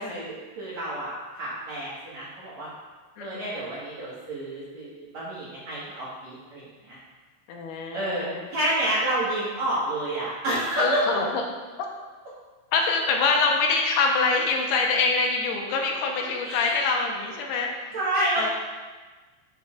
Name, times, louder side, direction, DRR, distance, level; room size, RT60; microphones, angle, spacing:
voice 1, 0.1-2.7 3.2-7.0 7.9-8.3 8.5-11.2 16.5-16.7 17.9-18.5, right 1 dB, 65° right, -9 dB, 1.8 m, -29 dB
voice 2, 3.2-3.5 7.5-8.5 10.8-11.4 11.8-11.9 12.7-18.0 18.4-18.5, left 4 dB, 75° left, 1 dB, 2.5 m, -25 dB
13.0 x 6.7 x 2.4 m, 1.3 s
omnidirectional pair, 5.1 m